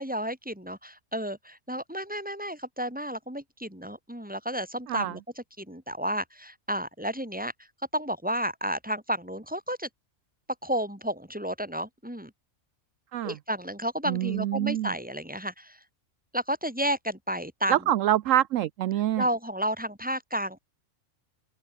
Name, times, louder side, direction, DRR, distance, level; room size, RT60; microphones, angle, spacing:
voice 1, 0.0-7.5 7.9-9.9 10.6-12.3 13.2-15.8 16.3-17.8 19.2-20.6, equal, 5° right, 5.0 m, -32 dB
voice 2, 14.1-14.9 17.7-19.2, right 12 dB, 70° right, 0.9 m, -25 dB
open air
omnidirectional pair, 1.5 m